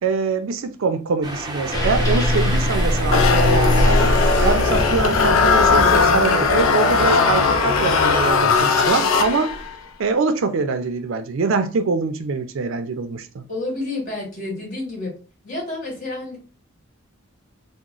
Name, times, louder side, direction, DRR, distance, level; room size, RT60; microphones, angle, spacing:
voice 1, 0.0-4.1 4.4-9.6 10.0-13.4, right 4 dB, 75° right, 0.4 m, -24 dB
sound 1, 1.2-8.3, right 1 dB, 20° right, 0.5 m, -30 dB
sound 2, 1.7-6.7, left 1 dB, 15° left, 0.7 m, -21 dB
sound 3, 3.1-9.7, left 4 dB, 80° left, 0.4 m, -18 dB
voice 2, 13.5-15.1 15.4-16.4, left 2 dB, 40° left, 1.7 m, -29 dB
2.9 x 2.0 x 3.8 m
head